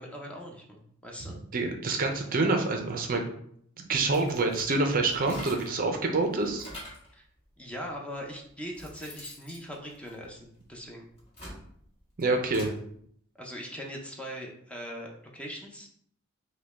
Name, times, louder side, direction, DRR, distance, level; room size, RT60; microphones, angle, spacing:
voice 1, 0.0-1.4 7.1-7.2 7.6-11.1 13.4-15.9, equal, 5° left, -1 dB, 0.6 m, -41 dB
voice 2, 1.5-3.3 3.8-6.6 12.2-12.7, right 3 dB, 45° right, 4 dB, 0.5 m, -27 dB
sound 1, 4.0-5.8 6.2-7.1 7.9-8.0 8.5-10.6 11.1-12.8, left 1 dB, 30° left, 1.6 m, -45 dB
5.1 x 2.2 x 3.4 m, 0.66 s
head